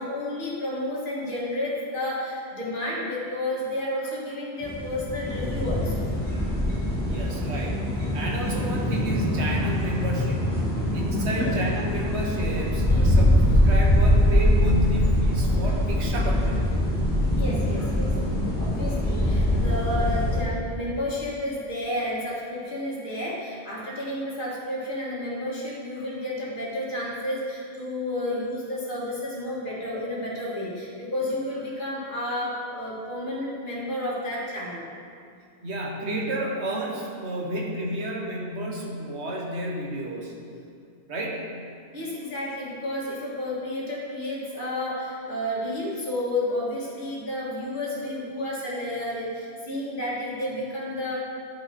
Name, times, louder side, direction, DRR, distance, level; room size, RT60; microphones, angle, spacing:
voice 1, 0.0-6.1 6.3-6.5 11.2-11.5 17.3-18.1 18.6-34.9 41.9-51.2, left 1 dB, 45° left, -7 dB, 1.9 m, -31 dB
sound 1, 4.6-20.4, left 1 dB, 10° left, 2.0 m, -23 dB
voice 2, 7.0-7.8 8.1-10.4 10.9-16.6 35.6-40.3 41.1-41.5, right 1 dB, 70° right, -1 dB, 1.4 m, -31 dB
10.5 x 5.6 x 4.3 m, 2.3 s
omnidirectional pair, 1.2 m